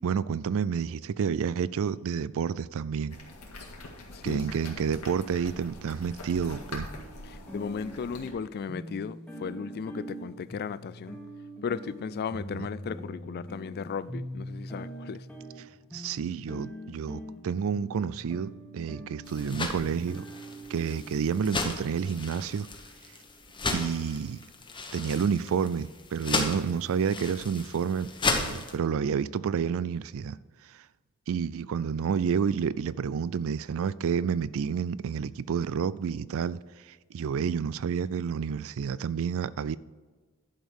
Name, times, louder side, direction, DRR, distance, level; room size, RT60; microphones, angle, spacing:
voice 1, 0.0-3.2 4.2-6.9 12.5-12.7 15.9-20.3 20.7-22.7 23.7-24.4 24.9-30.4 30.7-30.8 31.3-39.8, right 6 dB, 65° right, 0.4 m, -30 dB
sound 1, 3.1-8.3, left 2 dB, 85° left, 2.0 m, -44 dB
voice 2, 4.1-4.4 7.2-11.2 11.6-15.3, left 6 dB, 45° left, 0.3 m, -36 dB
sound 2, 6.5-22.8, right 1 dB, 5° left, 1.3 m, -43 dB
sound 3, 19.2-28.8, left 3 dB, 20° left, 1.0 m, -35 dB
11.0 x 5.3 x 6.4 m
head